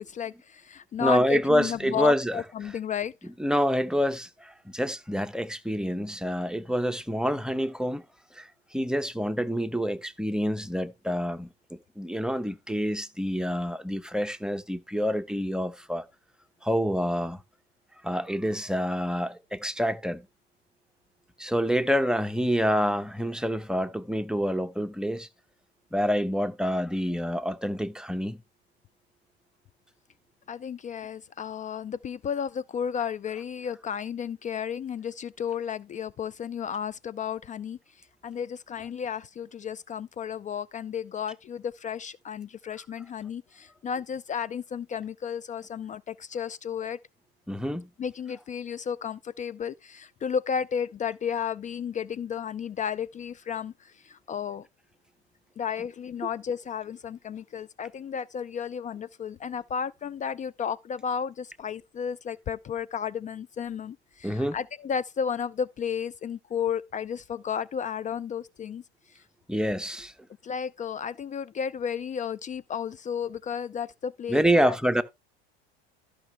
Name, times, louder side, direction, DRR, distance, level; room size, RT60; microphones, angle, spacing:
voice 1, 0.0-3.3 30.5-37.8 38.2-47.0 48.0-54.7 55.6-68.8 69.1-69.2 70.4-74.8, left 7 dB, 25° left, 0.4 m, -33 dB
voice 2, 1.0-2.4 3.4-8.0 8.3-16.0 16.6-17.4 18.0-20.2 21.4-25.3 25.9-28.4 47.5-47.9 64.2-64.6 69.5-70.1 74.3-75.0, equal, ahead, 1.0 m, -27 dB
13.5 x 6.2 x 3.3 m
hypercardioid pair, 85°, 32 cm